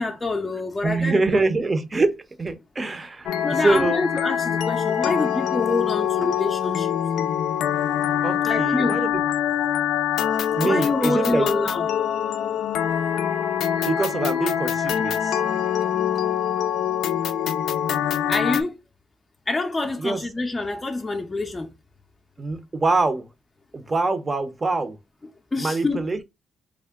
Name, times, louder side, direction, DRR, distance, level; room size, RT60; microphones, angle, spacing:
voice 1, 0.0-1.4 3.4-6.9 8.4-9.0 10.6-11.9 18.3-18.8 19.5-21.7 25.5-26.0, left 2 dB, 20° left, 0.5 m, -26 dB
voice 2, 0.8-4.0 8.2-9.2 10.5-11.5 13.9-15.4 20.0-20.2 22.4-23.3 23.7-25.0 25.6-26.2, right 3 dB, 25° right, 0.6 m, -24 dB
sound 1, 3.3-18.6, left 9 dB, 80° left, 0.3 m, -24 dB
3.5 x 2.1 x 3.5 m
cardioid pair, 90°, 0 cm